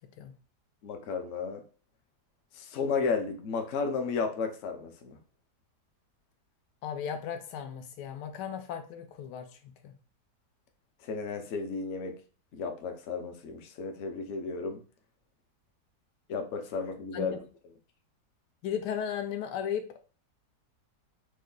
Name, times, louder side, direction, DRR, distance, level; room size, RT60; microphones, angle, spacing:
voice 1, 0.8-1.6 2.5-5.2 11.0-12.1 12.5-14.8 16.3-17.4, left 5 dB, 65° left, 5 dB, 0.7 m, -33 dB
voice 2, 6.8-9.9 17.1-17.3 18.6-20.0, left 8 dB, 90° left, 7 dB, 1.2 m, -36 dB
3.1 x 2.2 x 3.6 m, 0.38 s
omnidirectional pair, 1.8 m